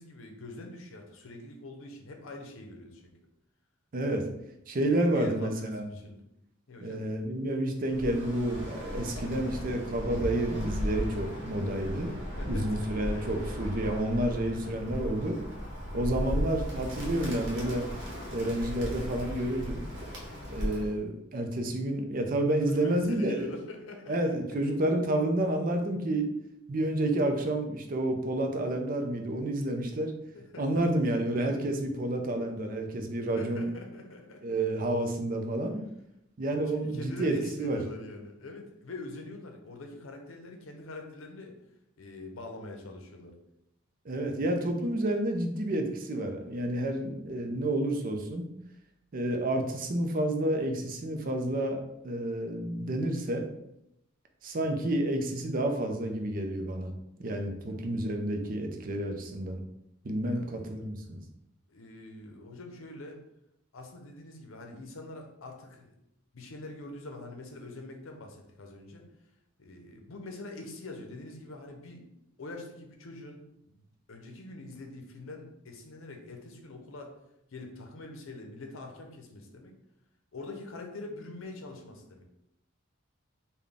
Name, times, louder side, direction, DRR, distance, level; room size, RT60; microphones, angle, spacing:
voice 1, 0.0-3.1 4.9-6.2 6.7-7.0 12.4-13.7 15.9-16.1 22.6-24.4 30.3-30.9 33.2-34.5 36.7-41.6 42.0-43.3 60.3-60.8 61.7-63.2 63.7-66.0 66.3-69.0 69.6-72.1 72.4-73.4 73.7-77.1 77.5-79.8 80.3-82.2, left 2 dB, 80° left, 3 dB, 0.6 m, -44 dB
voice 2, 3.9-4.2 4.7-5.9 6.8-12.1 12.4-15.4 15.9-17.9 18.3-19.8 20.5-23.6 24.1-26.3 26.7-30.1 30.6-33.7 34.4-35.8 36.4-37.8 44.0-48.4 49.1-53.5 54.4-56.9 57.2-59.6 60.0-61.2, right 1 dB, 45° right, 4 dB, 0.5 m, -30 dB
Bird, 7.8-21.0, equal, 60° right, 0.9 m, -36 dB
3.9 x 2.2 x 3.4 m, 0.82 s
head